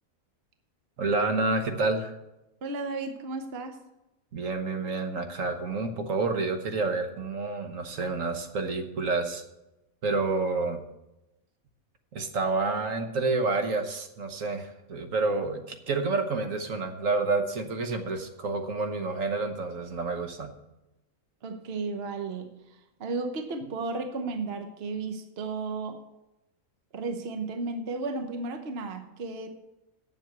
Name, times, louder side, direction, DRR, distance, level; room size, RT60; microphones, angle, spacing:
voice 1, 1.0-2.1 4.3-9.4 10.0-10.8 12.1-20.5, right 3 dB, 65° right, 5 dB, 1.4 m, -29 dB
voice 2, 2.6-3.8 21.4-22.5 23.0-26.0 26.9-29.5, right 3 dB, 50° right, 7 dB, 1.1 m, -33 dB
8.1 x 7.6 x 8.0 m, 0.94 s
omnidirectional pair, 1.5 m